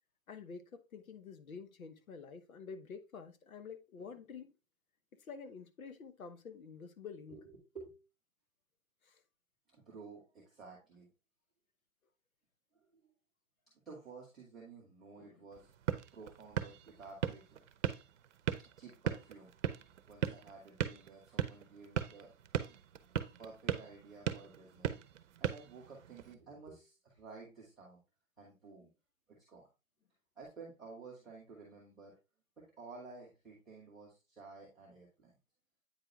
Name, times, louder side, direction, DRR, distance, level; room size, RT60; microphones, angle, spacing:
voice 1, 0.3-4.5 5.2-7.4 9.0-9.2 15.2-15.4, left 5 dB, 85° left, 1.0 m, -49 dB
voice 2, 7.3-8.0 9.7-11.1 12.7-13.1 13.9-17.6 18.6-19.5 20.1-22.8 23.4-28.0 28.4-28.9 29.3-29.7 30.4-32.2 32.6-35.3, right 4 dB, ahead, 0.4 m, -53 dB
sound 1, 15.5-26.3, right 9 dB, 60° right, 0.7 m, -39 dB
8.8 x 4.6 x 2.3 m
hypercardioid pair, 150°, 41 cm